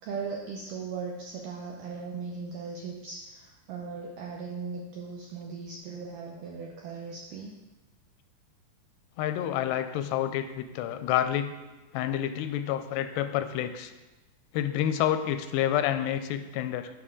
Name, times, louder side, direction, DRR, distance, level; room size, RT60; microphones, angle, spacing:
voice 1, 0.0-7.5, right 5 dB, 85° right, -1 dB, 1.9 m, -38 dB
voice 2, 9.2-11.5 11.9-13.9 14.5-16.9, left 11 dB, 85° left, 10 dB, 2.6 m, -28 dB
11.0 x 5.9 x 3.7 m, 1.1 s
omnidirectional pair, 4.7 m